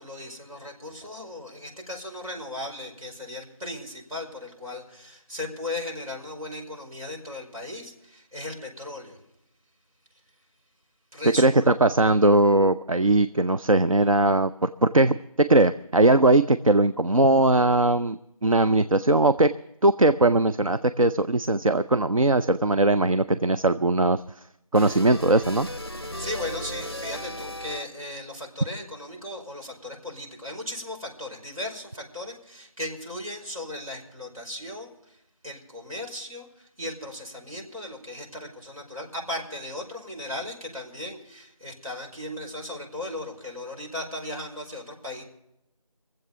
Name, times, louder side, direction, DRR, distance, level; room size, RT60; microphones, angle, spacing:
voice 1, 0.0-9.2 11.1-11.7 26.0-35.2 35.4-45.2, left 1 dB, 85° right, 1 dB, 5.3 m, -37 dB
voice 2, 11.2-19.5 19.8-24.2 24.7-25.7, right 2 dB, 65° right, 10 dB, 0.5 m, -20 dB
sound 1, 24.7-28.2, equal, 45° left, 0.5 m, -36 dB
22.5 x 7.8 x 7.0 m, 0.83 s
figure-of-eight pair, 180°, 18 cm